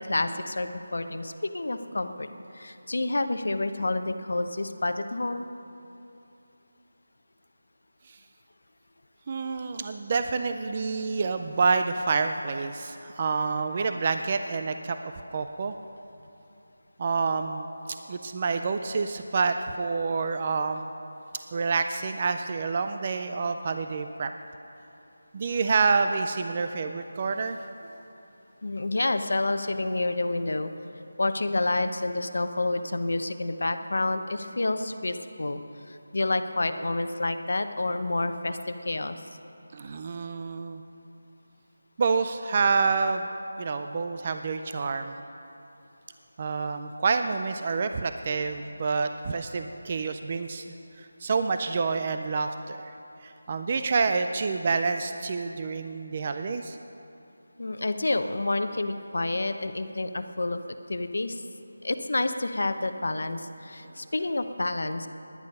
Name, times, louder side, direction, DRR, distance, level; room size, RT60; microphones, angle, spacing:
voice 1, 0.0-2.3 2.5-5.5 28.6-30.7 31.2-35.6 35.9-39.2 57.6-60.6 60.9-61.4 61.8-65.1, left 2 dB, 60° left, 9 dB, 0.8 m, -29 dB
voice 2, 9.3-15.0 15.3-15.7 17.0-17.7 18.1-20.9 21.5-24.3 25.3-27.6 39.7-40.8 42.0-43.3 43.6-45.2 46.4-50.6 51.0-52.9 53.2-56.8, right 4 dB, 20° right, 7 dB, 0.3 m, -28 dB
17.5 x 10.5 x 5.4 m, 2.9 s
figure-of-eight pair, 180°, 0 cm